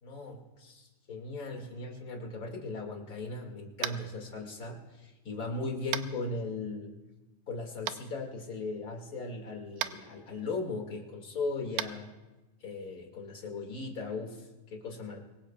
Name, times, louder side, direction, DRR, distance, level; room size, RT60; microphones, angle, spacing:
voice 1, 0.0-6.9 7.5-12.1 12.6-15.2, left 3 dB, 30° left, 1 dB, 2.1 m, -38 dB
Tap, 3.8-4.1 5.9-6.1 7.9-8.0 9.8-9.9 11.7-11.9, right 13 dB, 80° right, 1.9 m, -33 dB
26.0 x 21.0 x 2.3 m, 1.1 s
omnidirectional pair, 3.5 m